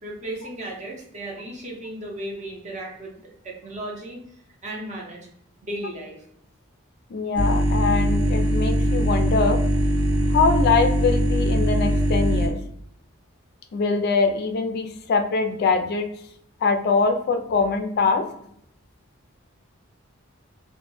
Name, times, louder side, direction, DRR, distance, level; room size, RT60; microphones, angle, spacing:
voice 1, 0.0-3.2 3.4-4.2 4.6-5.3 5.6-6.2, right 1 dB, 35° right, -1 dB, 0.6 m, -35 dB
voice 2, 7.1-9.6 10.3-12.6 13.7-16.1 16.6-18.3, left 4 dB, 50° left, 6 dB, 0.3 m, -23 dB
sound 1, 7.4-12.5, equal, 90° right, 0.5 m, -21 dB
2.1 x 2.0 x 3.0 m, 0.71 s
head